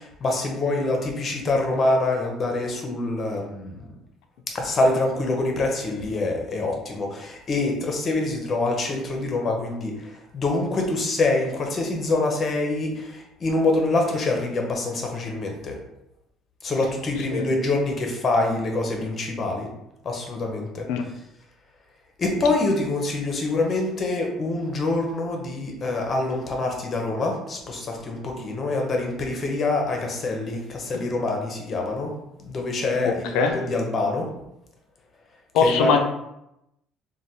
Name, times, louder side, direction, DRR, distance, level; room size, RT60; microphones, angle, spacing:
voice 1, 0.0-3.8 4.5-15.8 16.6-19.7 20.0-21.1 22.2-32.1 32.4-34.3 35.6-35.9, left 2 dB, 30° left, 1 dB, 0.6 m, -25 dB
voice 2, 33.0-33.6 35.5-36.0, left 5 dB, 90° left, 5 dB, 0.4 m, -21 dB
3.3 x 2.2 x 2.7 m, 0.85 s
cardioid pair, 135°, 0 cm